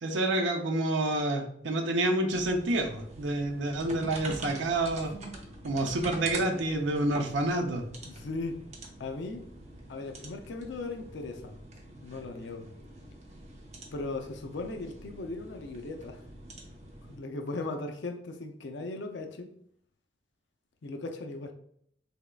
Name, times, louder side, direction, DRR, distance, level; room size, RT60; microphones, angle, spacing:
voice 1, 0.0-5.1 5.6-7.8, right 1 dB, 85° right, 0.6 m, -28 dB
sound 1, 2.3-17.2, right 2 dB, 40° right, 0.7 m, -45 dB
voice 2, 8.0-8.6 9.0-9.4 9.9-11.6 12.0-12.7 13.9-16.2 17.1-19.5 20.8-21.5, left 3 dB, 70° left, 0.5 m, -37 dB
3.9 x 3.5 x 2.3 m
head